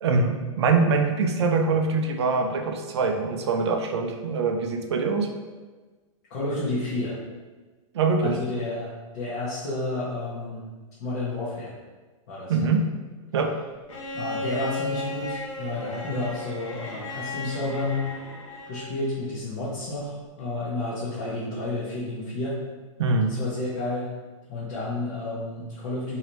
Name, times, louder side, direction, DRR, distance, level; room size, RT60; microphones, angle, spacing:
voice 1, 0.0-5.3 7.9-8.4 12.5-12.8 13.3-13.5 23.0-23.4, right 4 dB, 55° right, 4 dB, 0.4 m, -23 dB
voice 2, 6.3-7.1 8.2-10.6 11.0-11.7 12.3-12.7 14.1-18.1 18.7-22.6 23.2-24.1 24.5-26.2, left 2 dB, 30° left, -9 dB, 0.7 m, -31 dB
Bowed string instrument, 13.9-18.9 20.4-20.5, left 2 dB, 70° left, 0.9 m, -35 dB
3.1 x 2.7 x 3.0 m, 1.3 s
supercardioid pair, 180°, 17 cm